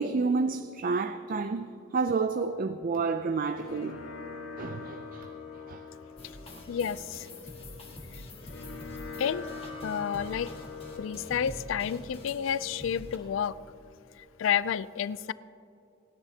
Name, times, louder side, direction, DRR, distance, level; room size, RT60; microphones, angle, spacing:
voice 1, 0.0-4.1 4.6-5.3 5.7-5.8, right 4 dB, 45° right, 0.4 m, -30 dB
sound 1, 3.2-14.2, left 4 dB, 85° left, 2.4 m, -44 dB
sound 2, 6.2-13.2, left 1 dB, 30° left, 1.6 m, -45 dB
voice 2, 6.7-7.3 8.1-8.2 9.2-9.5 9.8-10.5 11.0-13.6 14.2-15.3, left 8 dB, 70° left, 0.3 m, -30 dB
29.0 x 10.5 x 2.8 m
head